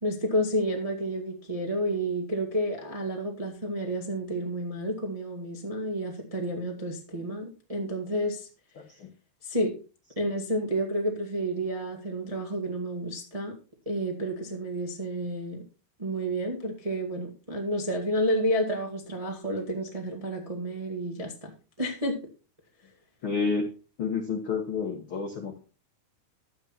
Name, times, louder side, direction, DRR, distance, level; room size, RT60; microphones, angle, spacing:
voice 1, 0.0-8.5 9.4-9.7 10.1-13.5 13.8-15.6 16.0-21.5 21.8-22.2, equal, 25° right, 0 dB, 0.7 m, -30 dB
voice 2, 23.2-23.7 24.0-25.6, left 5 dB, 85° left, 3 dB, 1.1 m, -29 dB
12.0 x 8.5 x 4.4 m, 0.33 s
omnidirectional pair, 4.7 m